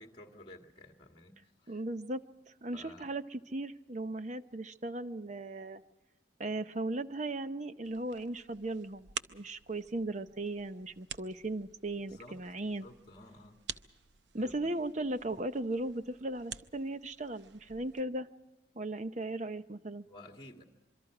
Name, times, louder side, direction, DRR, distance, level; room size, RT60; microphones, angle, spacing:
voice 1, 0.0-1.8 2.7-3.1 12.1-13.6 14.4-14.7 20.1-20.6, left 1 dB, 25° left, 3 dB, 1.9 m, -53 dB
voice 2, 1.7-2.2 2.6-5.8 6.4-12.9 14.3-18.3 18.7-20.0, right 2 dB, 40° right, 11 dB, 0.8 m, -37 dB
sound 1, 7.8-18.0, right 8 dB, 70° right, 0.7 m, -49 dB
26.0 x 23.5 x 4.9 m, 1.1 s
head